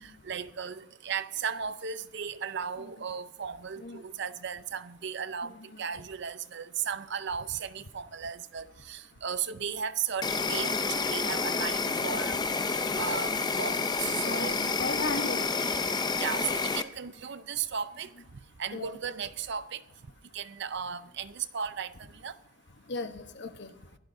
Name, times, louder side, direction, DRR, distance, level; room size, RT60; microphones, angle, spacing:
voice 1, 0.0-14.8 16.2-19.8 20.3-22.4, right 7 dB, 60° right, 0.6 m, -36 dB
voice 2, 5.4-5.8 10.4-10.9 14.2-15.5 18.7-19.0 22.9-23.7, left 3 dB, 60° left, 1.1 m, -37 dB
Insect, 10.2-16.8, left 4 dB, 20° left, 0.6 m, -29 dB
22.5 x 16.0 x 2.7 m
head